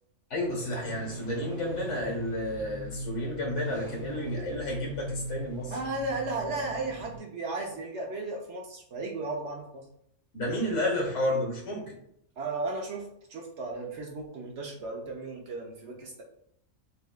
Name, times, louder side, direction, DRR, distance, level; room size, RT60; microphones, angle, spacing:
voice 1, 0.3-5.8 10.3-12.0, left 1 dB, 60° left, -1 dB, 1.5 m, -31 dB
sound 1, 0.8-7.2, equal, 25° right, 1.1 m, -40 dB
voice 2, 5.7-9.8 12.4-16.2, right 2 dB, 60° right, 0 dB, 0.9 m, -35 dB
6.5 x 2.5 x 2.2 m, 0.73 s
omnidirectional pair, 1.4 m